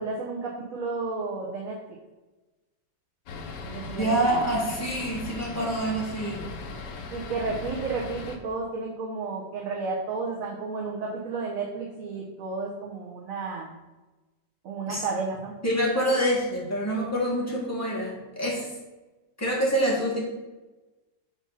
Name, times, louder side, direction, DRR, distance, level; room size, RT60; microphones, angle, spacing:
voice 1, 0.0-1.8 3.6-4.2 7.1-13.7 14.6-15.5, right 4 dB, 55° right, -2 dB, 1.3 m, -32 dB
sound 1, 3.3-8.4, left 3 dB, 75° left, 1.4 m, -38 dB
voice 2, 4.0-6.5 14.9-15.0 15.6-18.7 19.4-20.2, right 1 dB, 10° left, -5 dB, 1.9 m, -26 dB
5.7 x 4.3 x 6.1 m, 1.1 s
omnidirectional pair, 1.9 m